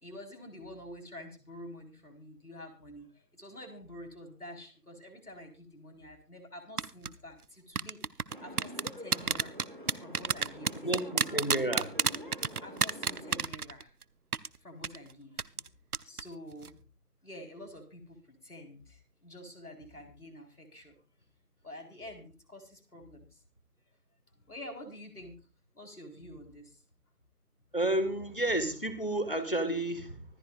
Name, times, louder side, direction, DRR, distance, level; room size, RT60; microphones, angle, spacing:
voice 1, 0.0-8.0 8.4-9.6 9.9-11.2 12.6-13.9 14.6-15.6 16.0-16.8 17.2-21.0 21.6-23.4 24.5-25.4 25.7-26.8, left 1 dB, 70° left, 4 dB, 4.4 m, -48 dB
sound 1, 6.8-7.1 7.8-14.0 14.3-14.5 14.8-15.0 15.4-15.7 15.9-16.2 16.5-16.7, right 6 dB, 70° right, 0.6 m, -29 dB
sound 2, 8.3-13.4, equal, 30° right, 2.1 m, -46 dB
voice 2, 10.8-11.9 27.7-30.2, right 1 dB, 35° left, 10 dB, 1.5 m, -31 dB
24.5 x 8.7 x 2.5 m, 0.34 s
figure-of-eight pair, 175°, 47 cm